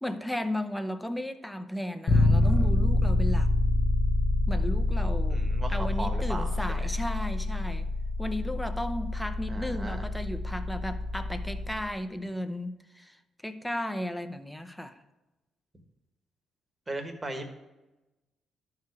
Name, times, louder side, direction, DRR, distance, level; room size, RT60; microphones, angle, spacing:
voice 1, 0.0-3.5 4.5-5.4 5.7-7.9 8.2-13.2 13.4-15.0, left 1 dB, 5° left, 8 dB, 0.7 m, -34 dB
Bass guitar, 2.1-11.9, left 2 dB, 45° left, 1.2 m, -27 dB
voice 2, 5.3-6.9 9.5-10.1 16.9-17.5, right 2 dB, 20° right, 5 dB, 1.3 m, -37 dB
12.0 x 4.8 x 4.7 m, 1.0 s
cardioid pair, 90°, 0 cm